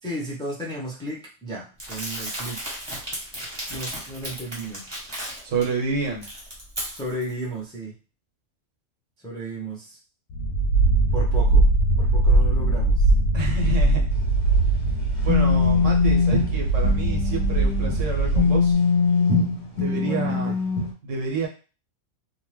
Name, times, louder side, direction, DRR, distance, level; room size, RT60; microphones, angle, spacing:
voice 1, 0.0-2.6 3.7-4.9 6.9-7.9 9.2-10.0 11.1-11.7 12.0-13.0 19.9-20.5, right 1 dB, 5° left, -4 dB, 0.5 m, -34 dB
Crumpling crinkling, 1.8-5.6 6.0-7.3, equal, 20° right, 1.1 m, -34 dB
voice 2, 5.4-6.3 13.3-14.1 15.2-18.8 19.7-20.6 21.0-21.5, right 4 dB, 75° right, 0 dB, 1.1 m, -28 dB
sound 1, 10.3-18.7, right 2 dB, 70° left, 0.9 m, -21 dB
sound 2, 14.2-18.1 18.3-20.9, left 5 dB, 35° left, 0.8 m, -22 dB
2.8 x 2.2 x 3.2 m, 0.34 s
omnidirectional pair, 1.3 m